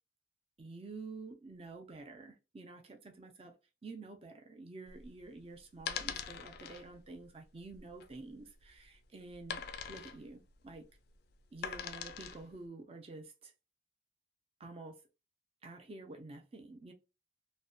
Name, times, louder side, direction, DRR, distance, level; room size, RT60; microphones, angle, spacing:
voice 1, 0.6-3.5 3.8-9.6 9.9-10.9 11.5-13.5 14.6-15.0 15.6-16.9, right 3 dB, 30° right, 0.5 m, -49 dB
sound 1, 4.9-12.5, left 7 dB, 55° left, 0.3 m, -43 dB
2.6 x 2.1 x 2.3 m
head